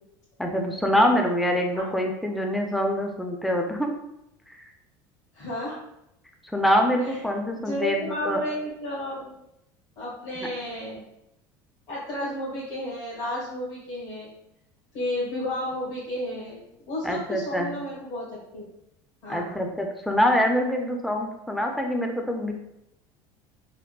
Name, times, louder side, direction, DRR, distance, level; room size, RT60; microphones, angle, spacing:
voice 1, 0.4-3.9 4.5-4.6 6.4-8.4 17.0-17.8 19.3-22.5, equal, ahead, 2 dB, 0.3 m, -25 dB
voice 2, 5.3-5.8 7.0-7.1 7.5-9.3 10.0-11.0 11.9-14.3 14.9-18.6 19.2-19.6, left 1 dB, 70° left, -9 dB, 1.4 m, -32 dB
3.5 x 2.1 x 2.2 m, 0.82 s
supercardioid pair, 115°, 10 cm